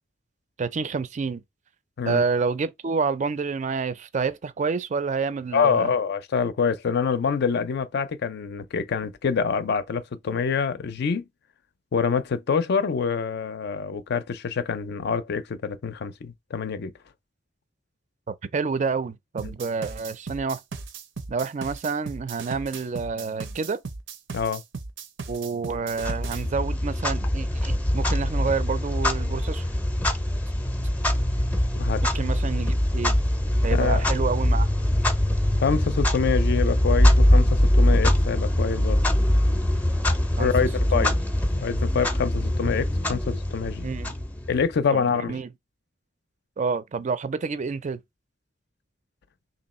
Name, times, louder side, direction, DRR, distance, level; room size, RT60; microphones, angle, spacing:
voice 1, 0.6-1.4 2.1-5.9 18.3-20.6 21.3-23.8 25.3-29.7 32.0-33.2 33.6-34.7 40.4-40.5 40.9-41.1 43.8-44.1 44.9-45.5 46.6-48.0, right 5 dB, 40° right, 0.4 m, -28 dB
voice 2, 5.5-11.2 11.9-16.9 19.4-19.5 24.3-24.6 31.8-32.0 33.7-34.1 35.6-39.0 40.4-41.2 41.6-43.9 44.5-45.4, left 6 dB, 60° left, 0.4 m, -26 dB
sound 1, 19.4-26.4, right 4 dB, 90° right, 0.7 m, -37 dB
Clock, 26.0-44.7, left 1 dB, 10° left, 0.5 m, -23 dB
3.0 x 2.7 x 4.1 m
head